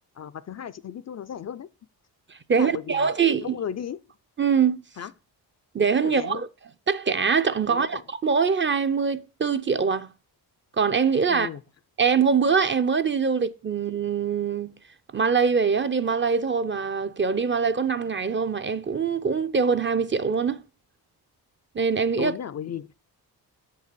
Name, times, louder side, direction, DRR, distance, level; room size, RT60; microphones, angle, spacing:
voice 1, 0.2-1.7 2.5-3.1 3.4-4.0 5.0-5.1 6.0-6.4 7.7-8.0 11.3-11.6 22.2-23.0, left 8 dB, 45° left, 0.5 m, -35 dB
voice 2, 2.3-3.5 4.4-4.8 5.7-6.5 6.9-10.1 10.8-11.5 12.0-14.7 15.1-20.6 21.7-22.3, right 6 dB, 30° right, 0.5 m, -23 dB
7.2 x 5.5 x 6.7 m
cardioid pair, 105°, 39 cm